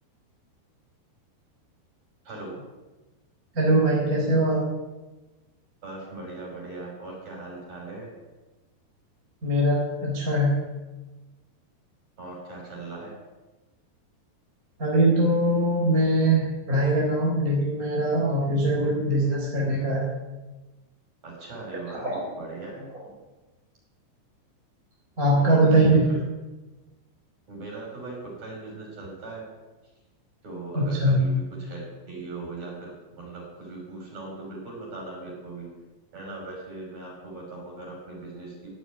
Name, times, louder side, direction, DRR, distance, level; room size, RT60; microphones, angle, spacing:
voice 1, 2.2-2.6 5.8-8.1 12.2-13.1 21.2-22.1 22.4-22.9 25.4-25.6 25.9-26.2 27.5-29.5 30.4-31.8 32.1-35.7 36.1-38.7, right 2 dB, 40° right, -3 dB, 7.2 m, -39 dB
voice 2, 3.5-4.6 9.4-10.6 14.8-20.0 22.0-22.3 25.2-26.1 30.7-31.2, right 1 dB, 20° right, -4 dB, 4.3 m, -22 dB
16.5 x 8.3 x 9.7 m, 1.1 s
omnidirectional pair, 4.9 m